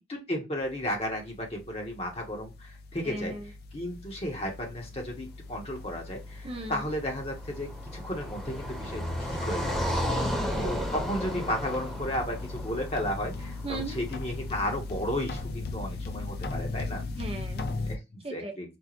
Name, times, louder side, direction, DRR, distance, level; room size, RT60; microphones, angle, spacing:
voice 1, 0.0-9.8 10.6-17.0 17.9-18.8, left 1 dB, 35° left, 1 dB, 1.1 m, -34 dB
sound 1, 0.6-18.0, left 3 dB, 55° left, 0.5 m, -39 dB
voice 2, 3.0-3.4 6.4-6.8 10.1-10.9 13.6-14.0 17.2-17.7 18.2-18.5, right 2 dB, 30° right, 4 dB, 0.6 m, -38 dB
Car passing by, 6.8-14.0, equal, ahead, 1.1 m, -33 dB
4.5 x 2.4 x 2.4 m, 0.25 s
head